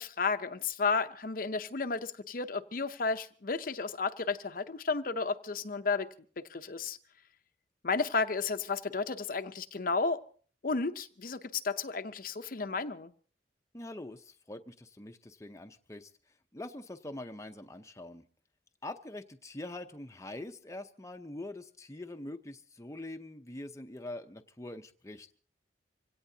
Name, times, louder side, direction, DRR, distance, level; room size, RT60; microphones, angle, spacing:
voice 1, 0.0-6.1 6.5-7.0 7.8-10.2 10.6-13.1, left 4 dB, 50° left, 9 dB, 0.7 m, -32 dB
voice 2, 13.7-16.1 16.5-18.2 18.8-25.3, left 1 dB, 15° left, 5 dB, 0.7 m, -44 dB
25.5 x 17.5 x 2.8 m, 0.43 s
head